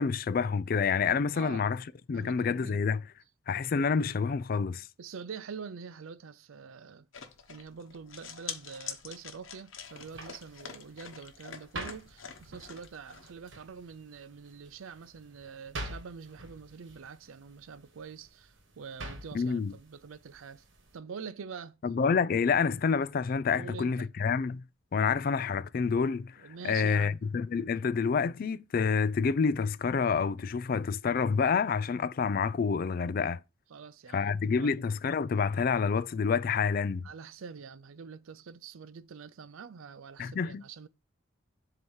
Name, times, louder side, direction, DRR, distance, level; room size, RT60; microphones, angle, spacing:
voice 1, 0.0-1.8 2.1-3.0 3.5-4.9 19.3-19.7 21.8-24.6 24.9-26.4 26.6-33.4 34.1-37.1 40.2-40.6, left 5 dB, 45° left, 0.3 m, -28 dB
voice 2, 2.1-2.8 5.0-7.1 7.5-20.6 20.9-21.8 23.5-24.1 25.0-25.3 26.4-27.2 33.7-34.8 37.0-40.9, right 6 dB, 85° right, 0.5 m, -45 dB
sound 1, 7.1-13.3, left 7 dB, 75° left, 0.9 m, -45 dB
sound 2, 9.8-21.0, right 2 dB, 65° right, 1.3 m, -47 dB
7.7 x 2.9 x 5.5 m
head